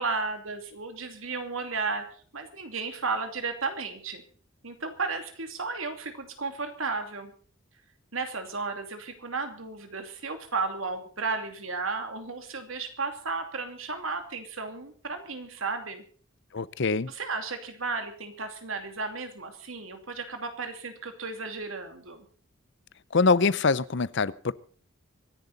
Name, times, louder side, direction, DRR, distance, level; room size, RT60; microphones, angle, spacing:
voice 1, 0.0-2.0 2.3-4.2 4.6-7.3 8.1-16.0 17.1-22.3, right 4 dB, 85° right, 6 dB, 2.7 m, -34 dB
voice 2, 16.5-17.1 23.1-24.5, left 4 dB, 60° left, 18 dB, 0.7 m, -24 dB
25.0 x 11.0 x 4.1 m, 0.44 s
head